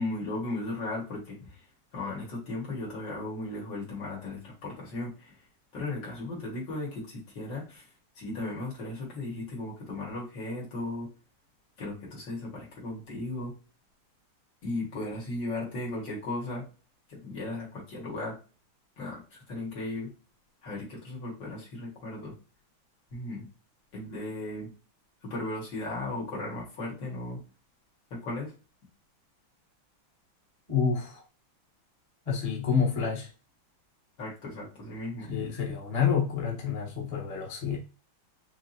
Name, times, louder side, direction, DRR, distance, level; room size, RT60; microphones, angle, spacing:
voice 1, 0.0-1.6 1.9-5.4 5.7-7.9 8.2-11.1 11.8-13.5 14.6-16.7 17.1-18.4 19.0-20.1 20.6-22.4 23.1-23.5 23.9-24.7 25.2-27.4 28.1-28.5 34.2-35.3, left 2 dB, 65° left, 2.4 m, -36 dB
voice 2, 30.7-31.2 32.3-33.3 35.3-37.8, left 6 dB, 25° left, 1.0 m, -28 dB
5.8 x 2.0 x 2.8 m
omnidirectional pair, 2.2 m